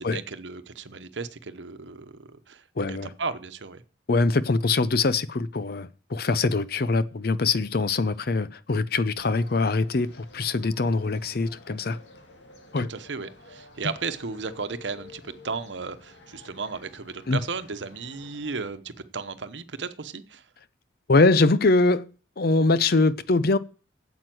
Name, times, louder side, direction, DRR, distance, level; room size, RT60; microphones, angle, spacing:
voice 1, 0.0-2.6 2.9-3.8 12.8-20.4, right 4 dB, 90° right, 1.0 m, -35 dB
voice 2, 2.8-3.1 4.1-12.0 12.7-12.9 17.3-17.4 21.1-22.1 22.4-23.6, left 3 dB, 55° left, 0.6 m, -23 dB
sound 1, 9.2-18.7, left 3 dB, 85° left, 2.3 m, -50 dB
9.1 x 8.1 x 7.7 m
head